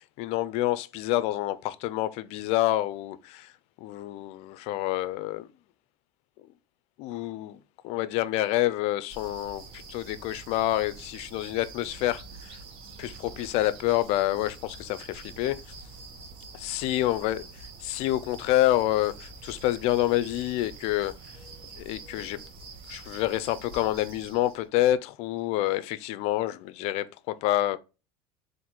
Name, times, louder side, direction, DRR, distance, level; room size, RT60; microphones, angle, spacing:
voice 1, 0.0-3.5 3.8-5.5 7.0-12.6 13.0-15.6 16.5-21.4 21.8-22.4 22.9-27.8, left 14 dB, 60° left, 0.4 m, -28 dB
sound 1, 9.1-24.6, right 4 dB, 45° right, 1.0 m, -46 dB
3.7 x 2.6 x 4.3 m
supercardioid pair, 130°, 12 cm